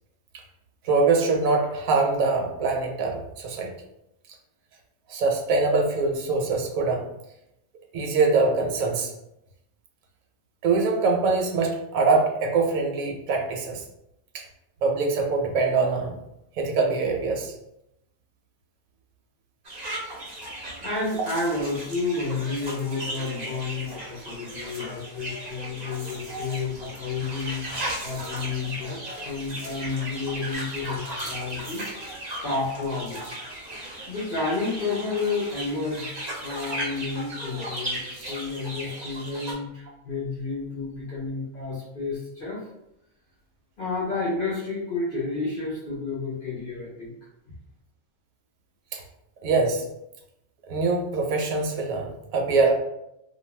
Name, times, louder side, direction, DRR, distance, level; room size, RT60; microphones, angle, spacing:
voice 1, 0.8-3.7 5.1-7.0 7.9-9.1 10.6-13.8 14.3-14.4 14.8-16.2 16.6-17.5 26.3-26.9 48.9-49.0 49.4-49.8 50.7-52.7, right 3 dB, 75° right, 1 dB, 1.0 m, -23 dB
sound 1, 19.6-39.5, right 1 dB, 45° right, 0.6 m, -36 dB
voice 2, 20.8-33.2 34.1-36.1 36.4-42.6 43.8-47.1, left 3 dB, 55° left, -5 dB, 0.6 m, -31 dB
2.3 x 2.2 x 3.1 m, 0.83 s
omnidirectional pair, 1.5 m